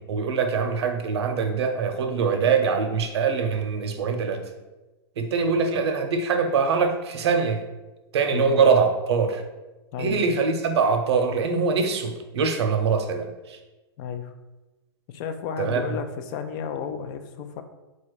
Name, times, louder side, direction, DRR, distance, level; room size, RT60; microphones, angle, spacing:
voice 1, 0.0-4.4 5.2-7.6 8.1-9.4 10.0-13.6 15.6-15.8, right 5 dB, 75° right, 6 dB, 0.7 m, -23 dB
voice 2, 9.9-10.2 14.0-14.3 15.1-17.6, left 7 dB, 45° left, 8 dB, 0.5 m, -32 dB
4.2 x 2.4 x 4.7 m, 1.1 s
hypercardioid pair, 125°, 14 cm